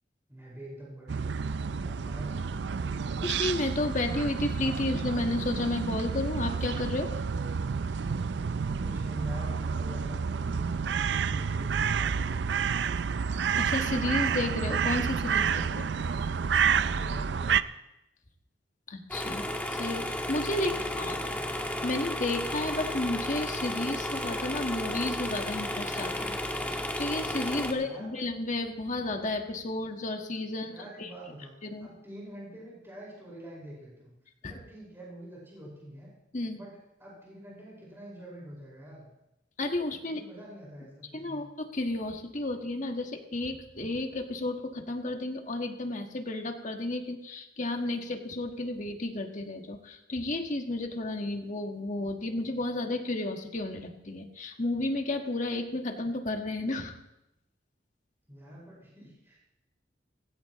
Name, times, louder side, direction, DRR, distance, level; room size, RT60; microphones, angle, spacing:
voice 1, 0.3-1.4 1.8-2.5 8.8-10.6 11.1-12.8 16.8-17.6 20.6-21.5 27.7-28.2 30.6-34.1 34.4-36.1 36.5-39.1 40.1-41.4 58.3-59.4, equal, 15° right, -5 dB, 5.2 m, -45 dB
sound 1, 1.1-17.6, right 6 dB, 70° right, 0.5 m, -29 dB
voice 2, 3.2-7.1 13.6-15.9 18.9-19.4 19.8-21.2 21.8-26.4 26.6-30.7 31.0-31.1 31.7-31.9 34.4-34.5 36.3-36.6 39.6-40.2 41.1-56.9, left 2 dB, 45° left, 4 dB, 1.5 m, -32 dB
sound 2, 19.1-27.7, left 1 dB, 10° left, 1.4 m, -33 dB
17.5 x 16.5 x 3.1 m, 0.87 s
head